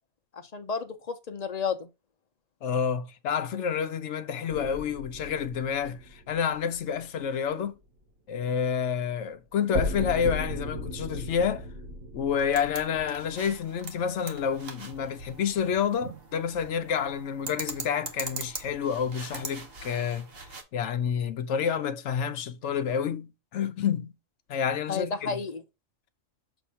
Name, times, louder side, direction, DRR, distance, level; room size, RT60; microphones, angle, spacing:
voice 1, 0.5-1.9 24.9-25.6, left 5 dB, 40° left, 0.6 m, -31 dB
voice 2, 2.6-7.8 8.3-11.7 12.1-20.3 20.7-24.1 24.5-25.4, left 7 dB, 65° left, 0.9 m, -29 dB
sound 1, 4.5-7.3 9.7-13.9, left 1 dB, 65° right, 1.6 m, -36 dB
sound 2, 12.3-20.6, right 4 dB, 50° right, 1.3 m, -42 dB
6.9 x 2.7 x 5.5 m
omnidirectional pair, 1.4 m